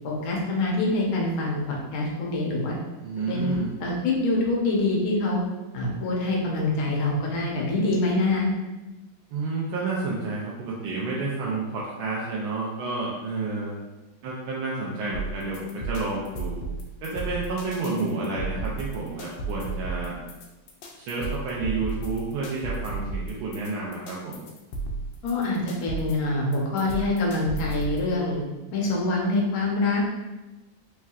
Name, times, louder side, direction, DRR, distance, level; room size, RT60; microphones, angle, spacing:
voice 1, 0.0-1.6 1.9-2.7 3.3-3.5 3.8-5.4 5.7-8.5 25.2-28.4 28.7-30.1, left 2 dB, 60° left, -2 dB, 1.1 m, -25 dB
voice 2, 3.0-3.7 9.3-13.8 14.2-16.6 17.0-20.2 21.0-24.5, right 3 dB, 90° right, -5 dB, 1.4 m, -30 dB
sound 1, 15.1-28.1, right 3 dB, 75° left, 1.3 m, -34 dB
4.5 x 3.2 x 2.3 m, 1.1 s
omnidirectional pair, 2.2 m